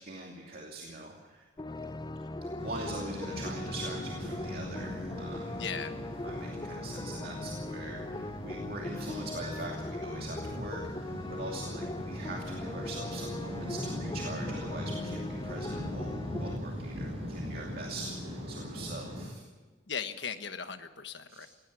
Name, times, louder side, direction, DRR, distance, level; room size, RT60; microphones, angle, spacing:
voice 1, 0.0-1.5 2.2-5.6 6.2-19.4 21.3-21.5, right 2 dB, 50° right, 0 dB, 2.7 m, -43 dB
sound 1, 1.6-16.6, left 2 dB, 20° left, 0.5 m, -40 dB
sound 2, 2.6-19.3, left 1 dB, 30° right, 6.1 m, -40 dB
voice 2, 5.5-5.9 19.9-21.5, left 6 dB, 60° left, 8 dB, 1.4 m, -38 dB
18.0 x 17.0 x 8.4 m, 1.3 s
head